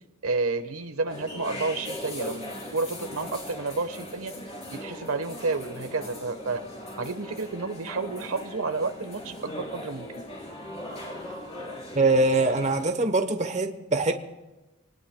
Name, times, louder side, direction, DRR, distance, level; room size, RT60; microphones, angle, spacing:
voice 1, 0.2-4.3 4.7-6.6 7.0-10.1, right 3 dB, 80° right, 1.2 m, -30 dB
sound 1, 1.1-12.9, left 1 dB, 30° left, 4.3 m, -39 dB
voice 2, 11.9-14.1, right 2 dB, 35° right, 1.0 m, -23 dB
27.5 x 19.5 x 2.3 m
head